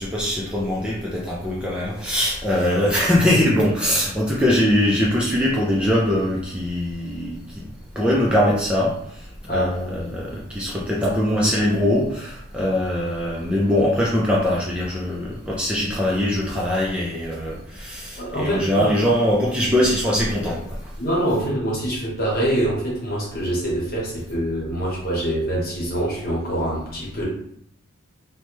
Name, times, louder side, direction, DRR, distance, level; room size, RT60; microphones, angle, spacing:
voice 1, 0.0-7.6 8.0-8.9 9.5-20.8, left 1 dB, 5° right, -5 dB, 0.3 m, -22 dB
voice 2, 18.2-18.9 21.0-27.2, right 1 dB, 45° left, -4 dB, 1.0 m, -25 dB
3.0 x 2.1 x 3.0 m, 0.71 s
head